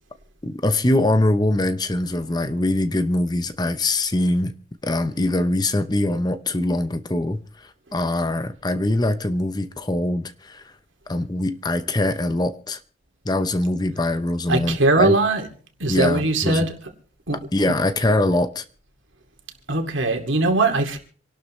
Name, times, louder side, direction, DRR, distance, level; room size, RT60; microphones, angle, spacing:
voice 1, 0.4-4.5 4.8-10.7 11.1-12.8 13.2-15.2 15.9-16.7 17.3-18.6, left 1 dB, 20° left, 0.7 m, -23 dB
voice 2, 14.5-15.5 15.8-16.7 17.3-17.4 19.7-21.0, right 2 dB, 75° right, 2.4 m, -20 dB
27.0 x 12.0 x 3.2 m
head